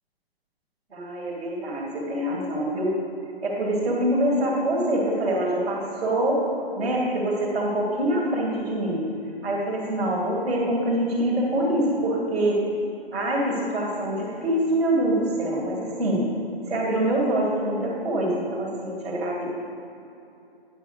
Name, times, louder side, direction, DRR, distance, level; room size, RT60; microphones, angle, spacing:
voice 1, 0.9-3.0 3.4-6.4 6.7-9.0 9.4-12.6 13.1-16.3 16.7-19.5, right 1 dB, ahead, -14 dB, 0.6 m, -25 dB
8.9 x 5.5 x 6.4 m, 2.7 s
hypercardioid pair, 170°, 31 cm